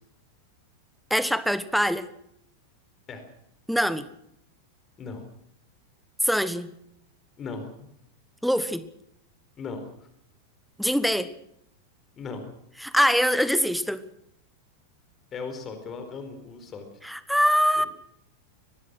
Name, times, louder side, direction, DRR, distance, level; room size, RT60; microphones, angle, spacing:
voice 1, 1.1-2.1 3.7-4.1 6.2-6.7 8.4-8.8 10.8-11.3 12.8-14.0 17.0-17.9, equal, ahead, 15 dB, 1.3 m, -23 dB
voice 2, 7.4-7.7 9.6-10.1 12.2-12.5 15.3-16.9, left 4 dB, 25° left, 8 dB, 4.4 m, -37 dB
24.5 x 19.0 x 6.2 m, 0.75 s
figure-of-eight pair, 90°, 0 cm